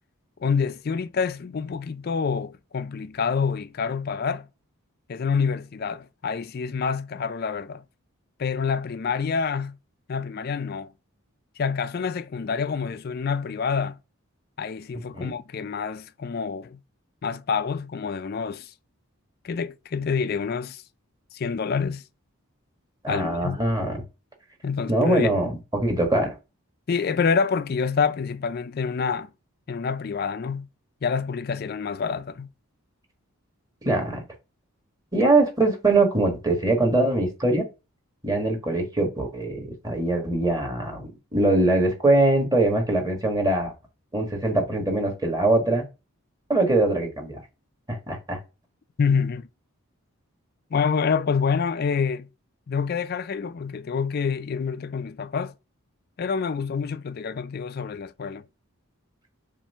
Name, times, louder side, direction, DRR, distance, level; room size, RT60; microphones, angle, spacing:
voice 1, 0.4-4.5 5.1-7.8 8.4-9.8 10.1-10.9 11.6-14.0 14.6-16.8 17.2-18.7 19.4-20.8 21.3-22.0 23.1-23.6 24.6-25.4 26.9-29.3 29.7-30.7 31.0-32.5 49.0-49.5 50.7-52.3 52.7-55.5 56.2-58.4, left 5 dB, 45° left, 0.4 m, -27 dB
voice 2, 23.0-24.0 24.9-26.4 33.8-34.2 35.1-37.6 38.2-43.7 44.1-45.8 46.5-47.4 47.9-48.4, right 2 dB, 15° right, 1.5 m, -22 dB
7.2 x 2.6 x 5.5 m
head